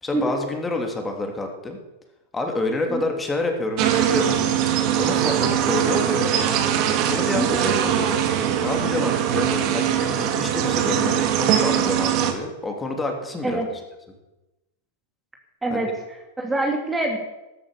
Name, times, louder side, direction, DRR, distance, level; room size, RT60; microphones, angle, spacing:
voice 1, 0.0-1.8 2.3-4.4 4.9-6.4 7.1-8.2 8.5-13.6 15.7-15.9, left 2 dB, 15° left, 3 dB, 3.2 m, -28 dB
sound 1, 3.8-12.3, right 10 dB, 45° right, 2.2 m, -21 dB
voice 2, 15.6-17.2, right 2 dB, 10° right, 2 dB, 2.5 m, -25 dB
13.5 x 13.5 x 6.9 m, 1.0 s
hypercardioid pair, 95°, 0 cm